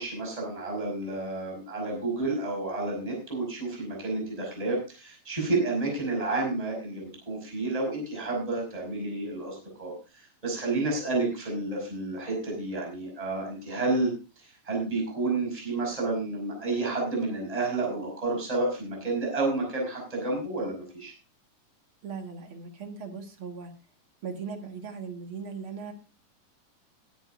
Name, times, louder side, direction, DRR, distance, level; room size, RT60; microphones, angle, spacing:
voice 1, 0.0-14.1 14.4-21.1, right 2 dB, 10° right, 0 dB, 5.4 m, -30 dB
voice 2, 22.0-23.7 24.2-25.9, right 5 dB, 45° right, 4 dB, 2.1 m, -38 dB
21.0 x 10.0 x 2.5 m, 0.31 s
omnidirectional pair, 3.8 m